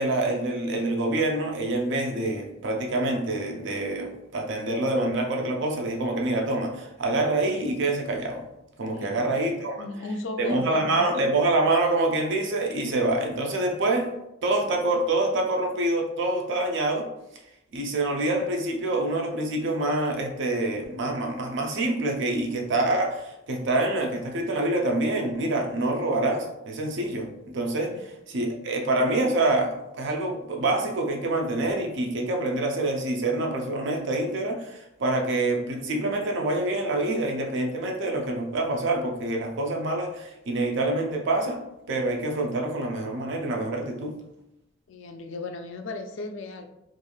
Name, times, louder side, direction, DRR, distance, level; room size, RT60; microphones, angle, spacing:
voice 1, 0.0-8.4 8.8-9.8 10.4-14.1 14.4-17.1 17.7-41.6 41.9-44.2, right 2 dB, 55° right, 2 dB, 0.5 m, -26 dB
voice 2, 8.9-9.3 9.8-11.1 27.9-28.1 44.9-46.7, left 2 dB, 60° left, 6 dB, 0.3 m, -36 dB
3.0 x 2.5 x 2.3 m, 0.86 s
head